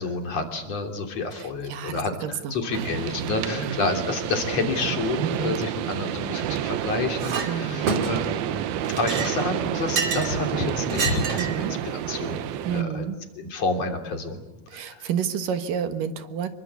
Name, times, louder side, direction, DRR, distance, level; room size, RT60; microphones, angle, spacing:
voice 1, 0.0-11.7 12.1-13.1 13.4-14.4 14.7-15.1, left 3 dB, 45° left, 4 dB, 4.1 m, -29 dB
voice 2, 1.3-3.8 5.2-5.6 7.5-8.0 11.4-11.8 12.6-13.2 14.7-16.5, right 7 dB, 65° right, 9 dB, 3.0 m, -31 dB
sound 1, 2.7-12.8, right 11 dB, 85° right, 3.1 m, -29 dB
Chink clink, 7.2-7.5 7.9-8.4 8.8-10.3 10.9-11.6, right 4 dB, 45° right, 3.4 m, -28 dB
27.5 x 23.5 x 8.4 m, 0.93 s
omnidirectional pair, 4.3 m